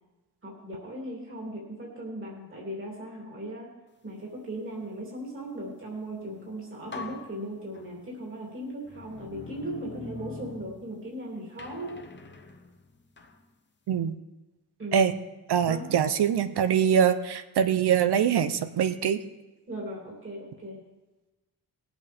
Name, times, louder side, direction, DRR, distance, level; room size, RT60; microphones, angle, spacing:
voice 1, 0.4-3.7 4.0-12.0 14.8-15.1 15.7-15.8 19.7-20.8, right 1 dB, 30° right, -3 dB, 3.2 m, -38 dB
sound 1, 6.3-6.5 6.9-8.2 8.8-11.2 11.6-13.4, left 3 dB, 30° left, 0.9 m, -43 dB
voice 2, 15.5-19.2, right 8 dB, 85° right, 11 dB, 0.9 m, -23 dB
20.5 x 8.2 x 3.5 m, 1.1 s
wide cardioid pair, 175°, 38 cm